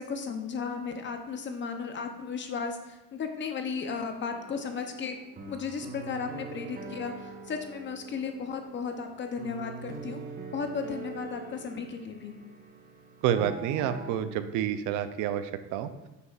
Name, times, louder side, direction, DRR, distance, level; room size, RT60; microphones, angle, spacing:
voice 1, 0.0-5.2 5.5-10.2 10.5-12.3, left 5 dB, 35° left, 5 dB, 0.7 m, -35 dB
sound 1, 4.3-14.2, right 4 dB, 30° right, 0.9 m, -44 dB
voice 2, 13.2-15.9, right 10 dB, 75° right, 10 dB, 0.6 m, -29 dB
6.8 x 6.7 x 2.4 m, 0.99 s
cardioid pair, 105°, 31 cm